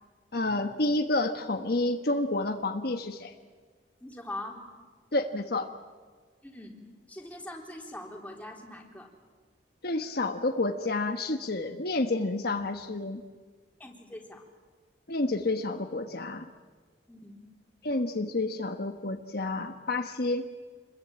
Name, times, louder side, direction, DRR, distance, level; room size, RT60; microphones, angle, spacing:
voice 1, 0.3-3.3 5.1-5.7 9.8-13.2 15.1-16.5 17.8-20.5, left 2 dB, 60° left, 6 dB, 1.3 m, -29 dB
voice 2, 4.0-4.6 6.4-6.8 7.1-9.1 13.8-14.4 17.1-17.4, left 1 dB, 10° left, 0 dB, 3.7 m, -42 dB
27.5 x 21.5 x 8.9 m, 1.5 s
head